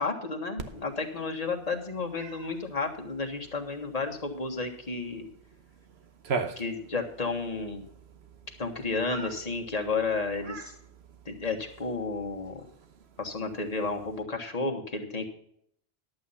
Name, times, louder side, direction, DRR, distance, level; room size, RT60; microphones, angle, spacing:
voice 1, 0.0-5.3 6.6-7.9 8.6-10.7 11.3-12.7 13.2-15.3, left 3 dB, 35° left, 2 dB, 1.7 m, -32 dB
Cat, 0.6-14.2, right 5 dB, 75° right, 1.3 m, -43 dB
11.5 x 8.0 x 5.7 m, 0.68 s
omnidirectional pair, 1.1 m